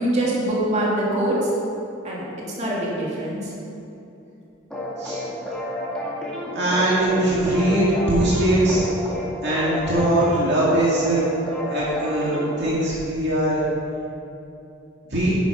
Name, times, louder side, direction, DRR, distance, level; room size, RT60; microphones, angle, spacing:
voice 1, 0.0-1.5 2.0-2.2 2.6-3.5, right 1 dB, 35° right, -6 dB, 2.9 m, -23 dB
sound 1, 4.7-12.7, left 1 dB, 5° left, 2.3 m, -30 dB
voice 2, 6.5-8.8 9.4-11.2 11.7-13.6 15.1-15.4, right 1 dB, 60° right, -7 dB, 2.3 m, -21 dB
10.5 x 10.5 x 5.2 m, 2.8 s
head